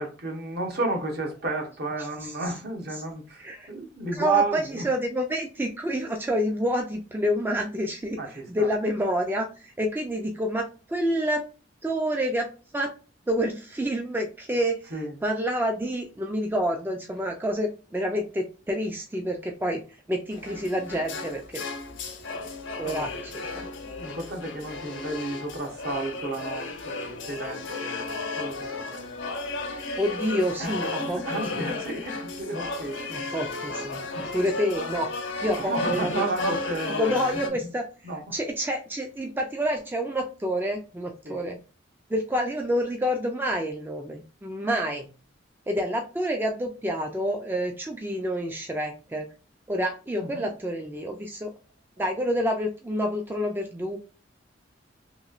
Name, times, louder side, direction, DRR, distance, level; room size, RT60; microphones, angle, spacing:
voice 1, 0.0-4.9 8.2-8.7 14.9-15.2 22.8-23.1 23.9-29.1 30.6-33.0 34.1-34.4 35.6-37.2 37.5-37.6 38.0-38.3 41.2-41.4 50.2-50.5, right 3 dB, 55° right, 0.9 m, -32 dB
voice 2, 3.4-3.7 4.1-8.2 8.5-11.5 11.8-12.9 13.3-14.9 15.2-19.8 20.1-21.6 22.8-23.7 30.0-31.2 31.5-31.6 33.1-34.0 34.3-35.1 35.4-36.6 37.0-37.8 38.3-41.6 42.1-45.1 45.7-49.3 49.7-51.5 52.0-54.0, equal, 10° right, 0.3 m, -28 dB
sound 1, 20.3-37.5, left 3 dB, 75° left, 0.6 m, -34 dB
3.0 x 2.8 x 2.4 m
head